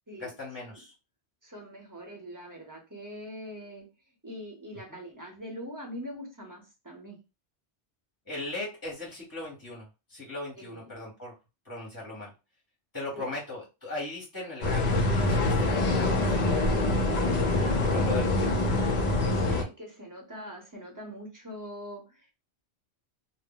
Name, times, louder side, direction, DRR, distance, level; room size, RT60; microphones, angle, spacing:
voice 1, 0.2-0.9 4.9-5.0 8.3-11.3 11.6-12.3 12.9-16.8 17.9-18.5, left 2 dB, 20° left, -5 dB, 0.8 m, -38 dB
voice 2, 1.4-3.9 4.2-7.2 10.6-10.9 13.1-13.3 17.7-18.5 19.2-22.3, equal, 20° right, -1 dB, 0.7 m, -43 dB
sound 1, 14.6-19.6, left 2 dB, 50° left, 0.5 m, -25 dB
2.1 x 2.0 x 3.7 m, 0.28 s
omnidirectional pair, 1.2 m